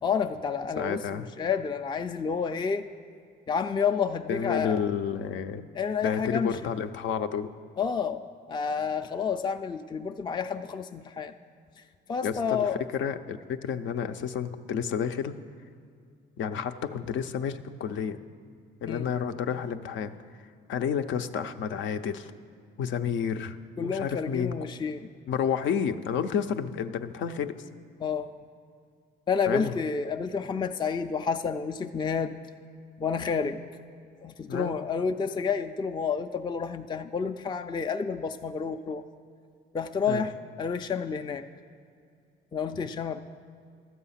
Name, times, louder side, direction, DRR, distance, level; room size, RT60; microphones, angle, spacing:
voice 1, 0.0-2.9 3.5-4.8 5.7-6.5 7.8-11.3 12.1-12.8 18.8-19.1 23.8-25.1 28.0-28.3 29.3-32.4 33.0-33.6 34.2-39.0 39.7-41.5 42.5-43.2, left 6 dB, 25° left, 7 dB, 0.4 m, -30 dB
voice 2, 0.8-1.3 4.3-5.6 6.0-7.5 12.2-15.4 16.4-18.2 18.8-20.1 20.7-22.3 22.8-23.6 23.8-24.5 25.3-27.6 29.5-29.7 34.5-34.7 40.1-40.2, left 7 dB, 75° left, 9 dB, 0.6 m, -30 dB
12.5 x 7.7 x 5.7 m, 2.3 s
cardioid pair, 90°, 20 cm